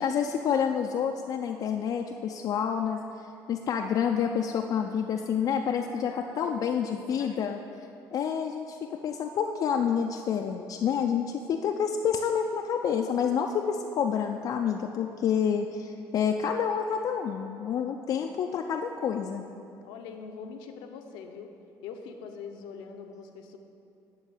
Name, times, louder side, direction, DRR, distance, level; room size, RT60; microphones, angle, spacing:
voice 1, 0.0-7.6 8.1-19.5, left 7 dB, 50° left, 3 dB, 0.4 m, -28 dB
voice 2, 6.0-6.5 6.9-7.4 19.8-21.5 21.8-23.6, left 6 dB, 90° left, 5 dB, 0.7 m, -43 dB
9.8 x 3.9 x 7.1 m, 2.7 s
cardioid pair, 100°, 8 cm